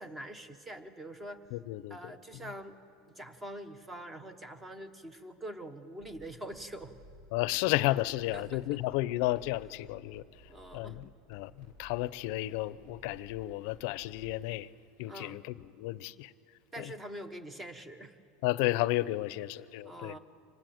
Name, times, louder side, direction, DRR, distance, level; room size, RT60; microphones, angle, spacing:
voice 1, 0.0-1.4 1.9-2.8 3.0-6.9 8.3-8.6 10.5-11.0 15.0-15.4 16.7-18.2 19.8-20.2, right 1 dB, 15° right, 1.2 m, -44 dB
voice 2, 1.5-2.5 7.3-10.4 10.7-14.7 15.0-16.3 16.8-16.9 18.4-20.2, left 17 dB, 65° left, 0.6 m, -33 dB
sound 1, 6.0-14.4, equal, 65° right, 5.1 m, -57 dB
25.5 x 19.5 x 7.9 m
supercardioid pair, 145°, 0 cm